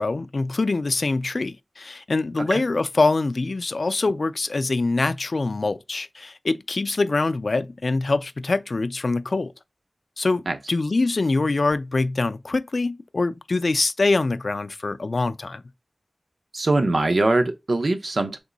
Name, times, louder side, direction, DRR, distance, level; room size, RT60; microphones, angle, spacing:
voice 1, 0.0-9.5 10.2-10.4 10.7-15.6, left 3 dB, 75° left, 0.3 m, -24 dB
voice 2, 16.5-18.4, right 2 dB, 85° right, 0.7 m, -22 dB
3.6 x 3.0 x 3.8 m
wide cardioid pair, 65°, 0 cm